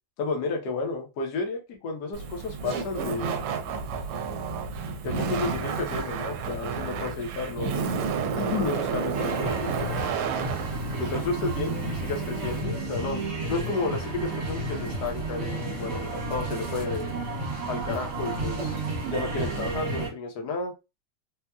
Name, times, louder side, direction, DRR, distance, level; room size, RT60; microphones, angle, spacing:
voice 1, 0.2-3.5 5.0-7.9 8.3-10.0 11.0-13.2 13.5-17.1 17.7-20.7, left 4 dB, 60° left, 2 dB, 1.3 m, -32 dB
Laughter, 2.1-12.6, right 5 dB, 85° right, 1.5 m, -31 dB
sound 1, 9.1-20.1, right 2 dB, 55° right, 1.7 m, -32 dB
4.2 x 2.4 x 2.3 m, 0.26 s
omnidirectional pair, 2.4 m